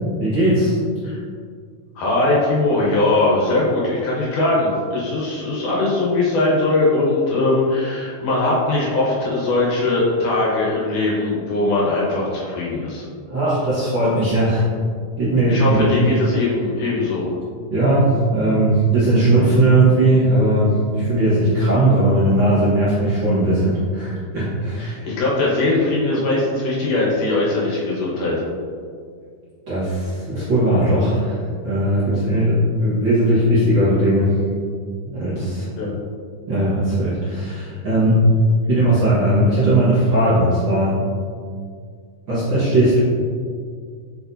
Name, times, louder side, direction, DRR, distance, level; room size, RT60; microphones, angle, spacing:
voice 1, 0.2-0.8 13.3-14.6 15.2-15.9 17.7-25.0 29.7-34.3 35.0-35.7 36.5-38.2 38.6-40.9 42.3-43.0, right 1 dB, 45° right, -11 dB, 1.7 m, -18 dB
voice 2, 2.0-13.1 15.5-17.3 24.8-28.4 35.8-35.9, left 2 dB, 70° left, -5 dB, 2.7 m, -20 dB
7.5 x 4.8 x 2.7 m, 2.1 s
omnidirectional pair, 3.9 m